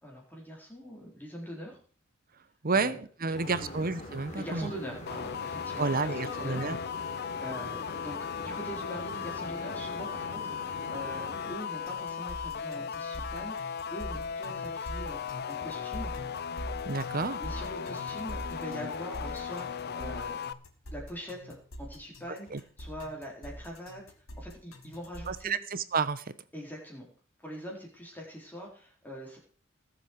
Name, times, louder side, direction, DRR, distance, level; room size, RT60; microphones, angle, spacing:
voice 1, 0.0-1.8 2.7-3.0 3.3-3.7 4.4-6.6 7.4-16.1 17.4-20.4 20.9-24.0 24.4-25.6 26.5-27.1 27.4-29.4, equal, 10° left, -2 dB, 4.0 m, -43 dB
voice 2, 2.6-4.7 5.8-6.8 16.9-17.4 22.5-22.6 25.3-26.2, right 4 dB, 45° right, 15 dB, 0.9 m, -30 dB
sound 1, 3.3-11.5, left 1 dB, 35° left, 4.2 m, -43 dB
sound 2, 5.1-20.5, left 7 dB, 50° left, 0.6 m, -37 dB
sound 3, 11.9-25.5, equal, 85° left, 2.3 m, -43 dB
20.0 x 7.8 x 4.6 m, 0.42 s
head